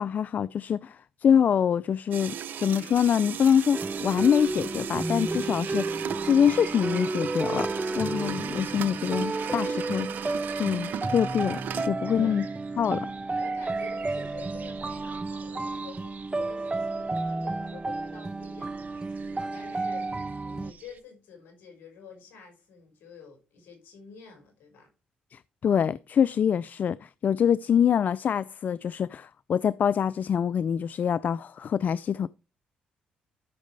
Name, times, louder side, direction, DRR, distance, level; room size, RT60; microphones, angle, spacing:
voice 1, 0.0-7.7 7.9-11.6 11.9-12.4 12.8-13.1 25.3-32.3, left 8 dB, 55° left, 0.4 m, -25 dB
sound 1, 2.1-11.9, right 9 dB, 70° right, 0.8 m, -37 dB
sound 2, 3.3-21.0, right 6 dB, 55° right, 1.3 m, -50 dB
sound 3, 3.7-20.7, right 3 dB, 25° right, 0.6 m, -32 dB
voice 2, 12.0-12.6 13.4-24.9, left 6 dB, 75° left, 5.5 m, -49 dB
13.0 x 6.3 x 3.3 m
supercardioid pair, 55°, 3 cm